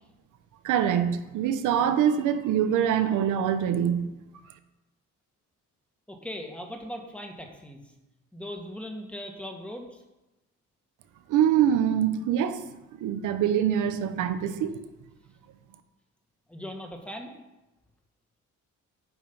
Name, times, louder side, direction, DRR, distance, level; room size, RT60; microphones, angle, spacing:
voice 1, 0.6-4.1 11.3-12.6 13.0-14.8, right 9 dB, 90° right, 10 dB, 0.9 m, -24 dB
voice 2, 6.1-7.8 8.3-10.0 16.5-17.3, equal, 5° left, 3 dB, 1.7 m, -39 dB
9.3 x 5.4 x 5.5 m, 0.99 s
cardioid pair, 90°, 30 cm